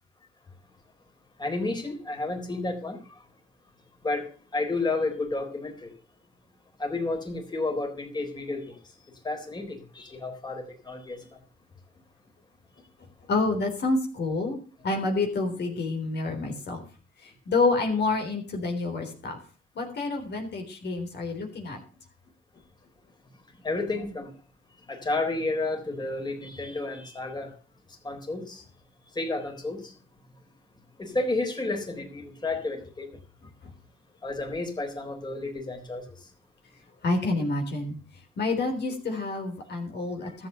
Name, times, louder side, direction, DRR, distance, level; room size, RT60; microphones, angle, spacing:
voice 1, 1.4-3.0 4.0-4.3 4.5-5.9 6.8-8.8 9.2-11.2 23.6-24.3 24.9-27.5 28.0-28.6 29.2-29.9 31.0-33.2 34.2-36.0 40.2-40.5, left 2 dB, 20° left, 3 dB, 4.0 m, -31 dB
voice 2, 13.3-16.8 17.2-19.4 19.8-21.8 33.6-33.7 37.0-38.0 38.4-40.5, left 3 dB, 60° left, 3 dB, 3.7 m, -28 dB
13.0 x 8.0 x 6.8 m, 0.39 s
cardioid pair, 90°, 20 cm